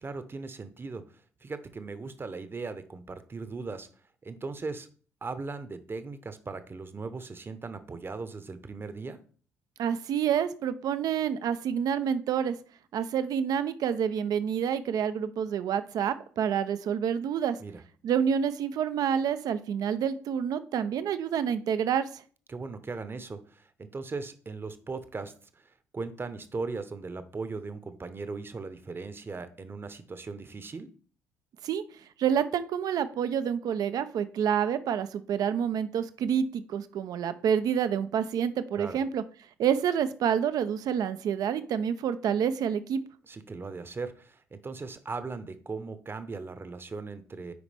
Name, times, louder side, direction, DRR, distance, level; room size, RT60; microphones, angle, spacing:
voice 1, 0.0-3.9 4.2-4.9 5.2-9.2 17.6-17.8 22.5-30.9 38.8-39.0 43.2-47.5, right 4 dB, 30° right, 11 dB, 0.9 m, -38 dB
voice 2, 9.8-12.6 12.9-17.6 18.0-22.2 31.6-31.8 32.2-39.2 39.6-43.0, right 8 dB, 60° right, 12 dB, 0.6 m, -28 dB
9.5 x 4.9 x 3.4 m, 0.43 s
hypercardioid pair, 50°, 7 cm